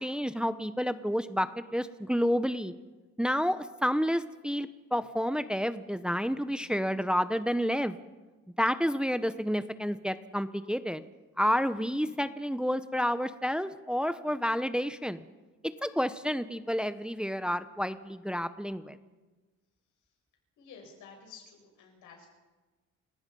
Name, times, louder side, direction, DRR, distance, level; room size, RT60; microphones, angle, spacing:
voice 1, 0.0-2.7 3.2-7.9 8.6-11.0 11.4-15.2 15.8-19.0, equal, 5° right, 11 dB, 1.0 m, -30 dB
voice 2, 20.6-22.3, left 5 dB, 85° left, 1 dB, 7.8 m, -51 dB
29.5 x 18.0 x 5.5 m, 1.2 s
cardioid pair, 90°, 30 cm